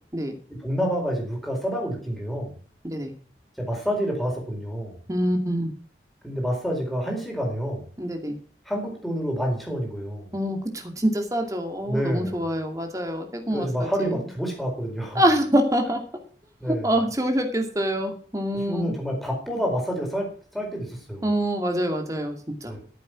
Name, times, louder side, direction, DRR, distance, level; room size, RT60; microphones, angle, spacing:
voice 1, 0.5-2.5 3.6-5.0 6.2-7.8 8.7-10.3 11.8-12.4 13.5-15.2 16.6-16.9 18.5-21.3 22.6-22.8, equal, ahead, 0 dB, 4.3 m, -28 dB
voice 2, 5.1-5.7 8.0-8.4 10.3-14.1 15.1-16.0 16.6-18.8 21.2-22.8, equal, 20° right, 4 dB, 2.3 m, -25 dB
14.0 x 7.6 x 6.0 m, 0.43 s
head